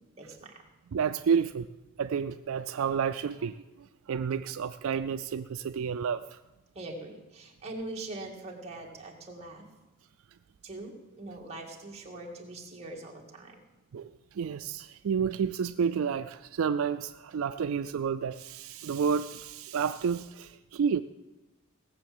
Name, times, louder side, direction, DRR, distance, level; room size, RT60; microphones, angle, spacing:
voice 1, 0.2-0.7 6.7-9.7 10.6-13.6, right 2 dB, 30° right, -1 dB, 2.2 m, -42 dB
voice 2, 0.9-1.7 2.0-6.4 13.9-21.0, right 6 dB, 70° right, 10 dB, 0.4 m, -30 dB
17.5 x 7.3 x 7.8 m, 1.1 s
head